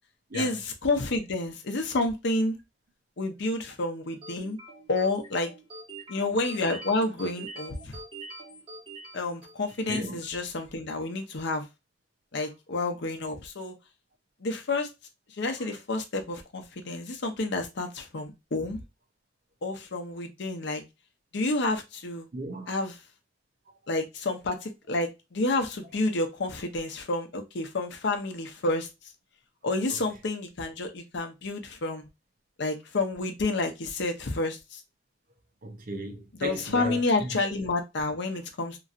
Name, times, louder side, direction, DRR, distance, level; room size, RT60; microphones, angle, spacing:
voice 1, 0.3-2.6 3.2-4.6 4.9-5.5 6.1-8.0 9.1-11.6 12.3-13.8 14.4-14.9 15.4-18.8 19.6-20.8 21.3-22.3 22.7-23.0 23.9-28.9 29.6-32.0 32.6-34.8 36.4-38.8, left 2 dB, 65° left, 0.7 m, -29 dB
sound 1, 4.2-10.0, right 2 dB, 30° right, 1.5 m, -44 dB
voice 2, 9.9-10.2 15.6-15.7 22.3-22.7 35.6-37.4, right 2 dB, 50° right, 0.6 m, -36 dB
3.0 x 2.6 x 2.4 m
head